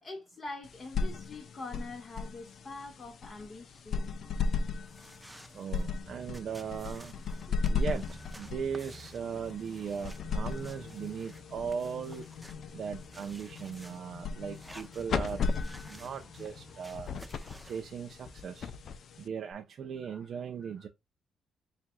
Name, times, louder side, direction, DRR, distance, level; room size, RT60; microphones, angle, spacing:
voice 1, 0.0-4.1 7.5-7.6 16.9-17.0 20.0-20.3 20.6-20.9, left 3 dB, 35° left, 1.4 m, -45 dB
sound 1, 0.6-19.5, left 4 dB, 60° left, 0.5 m, -37 dB
sound 2, 4.2-17.9, right 1 dB, 5° right, 0.6 m, -53 dB
voice 2, 5.5-7.1 7.6-8.0 8.4-12.2 12.7-15.5 15.9-17.1 17.7-18.7 19.2-20.9, right 7 dB, 60° right, 0.5 m, -38 dB
sound 3, 8.5-19.3, left 7 dB, 80° left, 0.9 m, -52 dB
7.0 x 2.5 x 2.2 m
cardioid pair, 90°, 0 cm